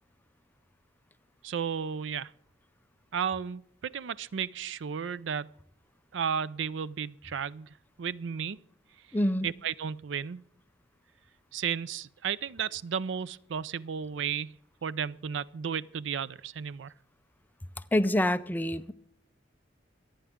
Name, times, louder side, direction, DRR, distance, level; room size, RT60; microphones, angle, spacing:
voice 1, 1.4-2.3 3.1-5.5 6.1-8.6 9.4-10.4 11.5-14.5 14.8-16.9, right 7 dB, 75° right, 0.4 m, -33 dB
voice 2, 9.1-9.5 17.9-18.9, left 1 dB, 10° left, 0.5 m, -26 dB
26.0 x 9.0 x 3.6 m
head